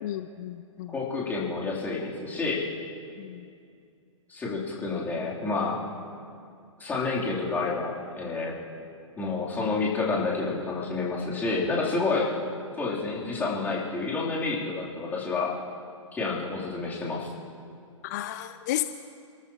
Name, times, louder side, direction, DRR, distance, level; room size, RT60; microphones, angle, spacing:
voice 1, 0.0-0.9 3.2-3.5 18.0-18.8, left 14 dB, 35° left, 11 dB, 0.4 m, -33 dB
voice 2, 0.9-2.6 4.3-5.8 6.8-8.5 9.2-12.3 12.8-15.5 16.1-17.3, left 3 dB, 10° left, -5 dB, 3.1 m, -29 dB
29.0 x 13.5 x 2.9 m, 2.4 s
figure-of-eight pair, 115°, 17 cm